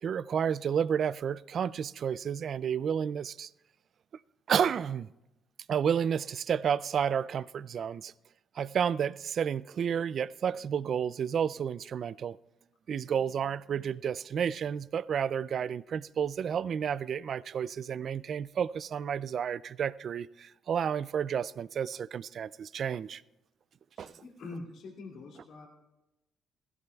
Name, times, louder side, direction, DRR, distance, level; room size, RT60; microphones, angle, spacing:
voice 1, 0.0-3.5 4.5-5.1 5.7-8.1 8.6-12.4 12.9-23.2 24.0-24.1, right 8 dB, 60° right, 0.3 m, -31 dB
voice 2, 24.0-25.7, left 3 dB, 75° left, 2.4 m, -44 dB
16.5 x 15.5 x 2.3 m
cardioid pair, 90°, 0 cm